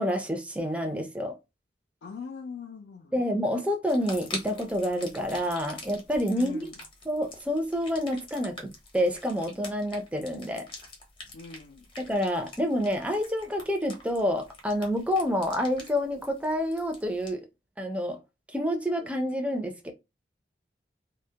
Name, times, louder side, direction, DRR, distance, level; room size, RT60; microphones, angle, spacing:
voice 1, 0.0-1.4 3.1-6.7 7.1-10.7 12.0-17.5 17.8-18.2 18.5-19.9, equal, 5° right, 0.4 m, -28 dB
voice 2, 2.0-3.2 6.3-6.8 11.3-11.9, left 5 dB, 90° left, 0.4 m, -41 dB
sound 1, 3.9-17.3, left 2 dB, 30° left, 0.6 m, -45 dB
2.2 x 2.0 x 2.7 m
head